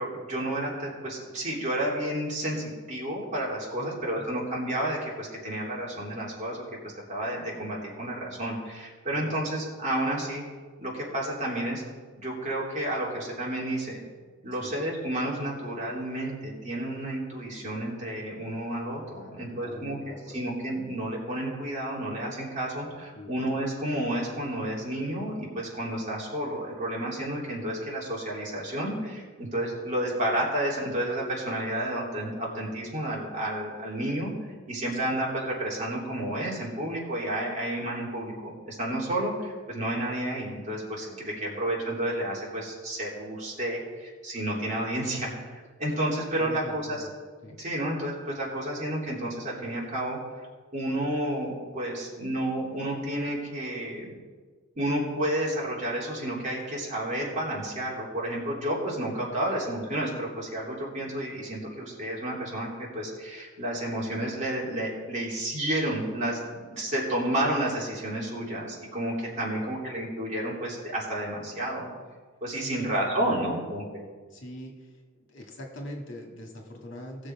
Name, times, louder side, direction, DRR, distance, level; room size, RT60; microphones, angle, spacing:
voice 1, 0.0-6.6 7.1-10.4 10.8-11.8 12.2-14.0 14.4-34.3 34.7-47.1 47.6-50.2 50.7-54.1 54.8-71.9 72.4-74.1, right 1 dB, 40° right, -5 dB, 3.3 m, -31 dB
voice 2, 3.8-4.2 9.1-9.3 14.6-14.7 19.1-20.4 22.8-23.4 41.1-41.6 46.4-47.1 47.4-47.6 59.3-59.5 69.5-69.8 72.6-73.7 74.3-74.7 75.3-77.3, equal, 70° left, 1 dB, 1.9 m, -43 dB
18.5 x 6.5 x 4.8 m, 1.5 s
head